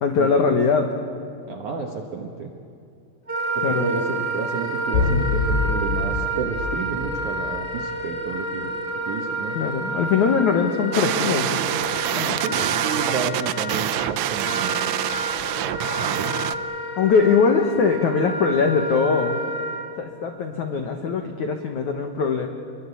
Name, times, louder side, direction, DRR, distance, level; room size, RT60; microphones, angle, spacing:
voice 1, 0.0-0.9 3.6-3.9 9.5-11.6 12.1-12.4 17.0-19.4 20.0-22.5, left 5 dB, 80° left, 4 dB, 1.7 m, -21 dB
voice 2, 1.5-2.5 3.6-8.7 9.1-9.6 12.4-14.9 16.0-16.3, right 5 dB, 65° right, 1 dB, 2.0 m, -31 dB
Wind instrument woodwind instrument, 3.3-19.9, right 2 dB, 5° left, 3.9 m, -29 dB
sound 1, 4.9-7.8, left 4 dB, 50° left, 3.8 m, -25 dB
sound 2, 10.9-16.6, right 14 dB, 80° right, 3.2 m, -26 dB
28.0 x 22.5 x 8.5 m, 2.5 s
omnidirectional pair, 5.5 m